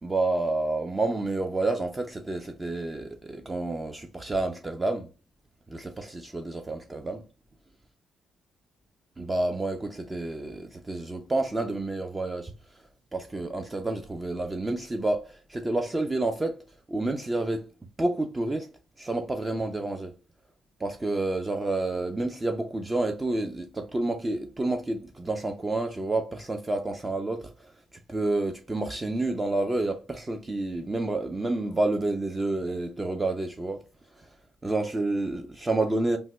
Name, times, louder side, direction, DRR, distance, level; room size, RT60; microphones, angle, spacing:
voice 1, 0.0-5.1 5.7-7.2 9.2-16.6 16.9-17.7 18.0-18.7 19.0-20.2 20.8-27.7 28.1-33.8 34.1-34.4 34.6-36.2, right 2 dB, 20° right, 0.4 m, -29 dB
3.3 x 2.1 x 3.0 m
cardioid pair, 90°, 0 cm